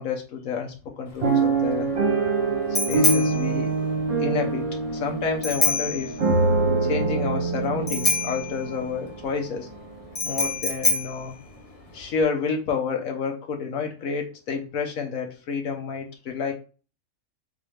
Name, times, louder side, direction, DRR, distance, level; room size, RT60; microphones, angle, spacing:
voice 1, 0.0-1.9 2.9-3.7 4.2-6.2 6.8-9.7 10.2-11.3 11.9-16.5, left 5 dB, 70° left, 3 dB, 1.3 m, -29 dB
Bicycle bell, 1.1-12.2, left 3 dB, 25° left, 1.2 m, -29 dB
sound 1, 1.2-9.3 9.9-10.0 10.3-10.5, right 3 dB, 50° right, 1.7 m, -25 dB
4.2 x 3.9 x 3.2 m, 0.36 s
omnidirectional pair, 1.5 m